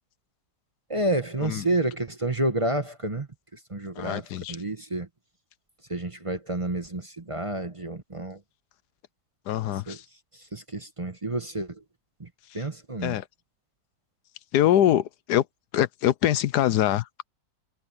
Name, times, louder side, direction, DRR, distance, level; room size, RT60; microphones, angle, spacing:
voice 1, 0.9-5.1 5.9-8.4 9.9-10.0 10.3-11.8 12.2-12.3 12.5-13.2, right 1 dB, 20° right, 1.1 m, -30 dB
voice 2, 3.9-4.6 9.5-10.0 13.0-13.2 14.5-15.5 15.7-17.3, left 12 dB, 85° left, 1.3 m, -24 dB
omnidirectional pair, 1.7 m